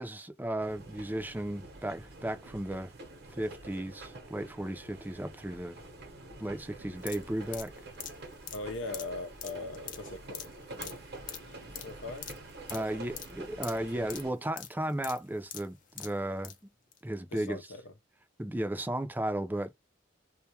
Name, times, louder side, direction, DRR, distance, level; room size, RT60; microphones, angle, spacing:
voice 1, 0.0-2.9 3.3-5.8 6.4-7.7 12.7-16.5 17.0-17.6 18.4-19.7, right 1 dB, 10° right, 0.5 m, -35 dB
sound 1, 0.6-14.3, right 2 dB, 60° right, 0.9 m, -47 dB
sound 2, 7.0-16.6 16.9-17.0, left 9 dB, 45° left, 0.5 m, -45 dB
voice 2, 8.5-11.0 11.3-12.3 12.7-13.2 14.0-14.3 17.3-17.9, left 2 dB, 90° left, 0.6 m, -42 dB
2.3 x 2.1 x 2.8 m
head